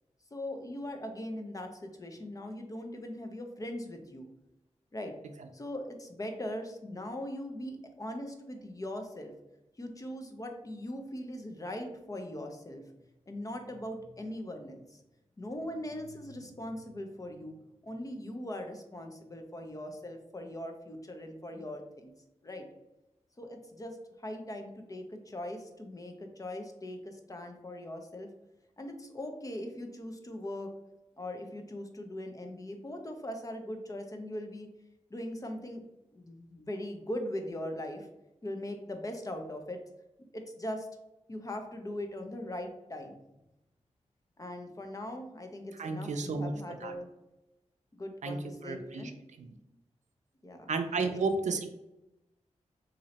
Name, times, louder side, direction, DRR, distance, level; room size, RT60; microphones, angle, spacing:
voice 1, 0.3-4.3 4.9-5.1 5.5-9.3 9.8-12.8 13.3-15.0 15.4-17.6 17.8-22.1 22.4-22.6 23.4-28.3 28.8-30.7 31.2-34.7 35.1-35.8 36.1-38.1 38.4-39.8 40.3-40.9 41.3-43.2 44.4-47.1 47.9-49.2 50.4-50.7 51.1-51.5, left 1 dB, 30° left, 4 dB, 0.6 m, -40 dB
voice 2, 45.8-46.9 48.2-48.4 48.6-49.1 49.4-49.5 50.7-51.7, right 4 dB, 75° right, 6 dB, 0.5 m, -32 dB
3.1 x 2.7 x 4.0 m, 0.93 s
wide cardioid pair, 90°, 12 cm